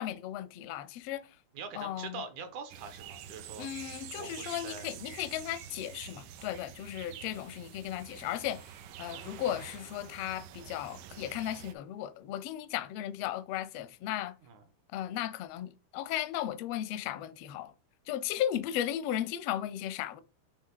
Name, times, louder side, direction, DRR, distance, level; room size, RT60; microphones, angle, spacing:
voice 1, 0.0-1.4 1.7-2.2 3.6-8.6 9.0-14.3 14.9-17.7 18.1-20.2, left 12 dB, 80° left, 1.4 m, -36 dB
voice 2, 1.5-3.9 4.1-4.9 14.4-14.6, right 5 dB, 70° right, 2.5 m, -44 dB
sound 1, 2.7-11.7, right 10 dB, 85° right, 2.4 m, -47 dB
9.4 x 3.3 x 3.9 m
omnidirectional pair, 3.6 m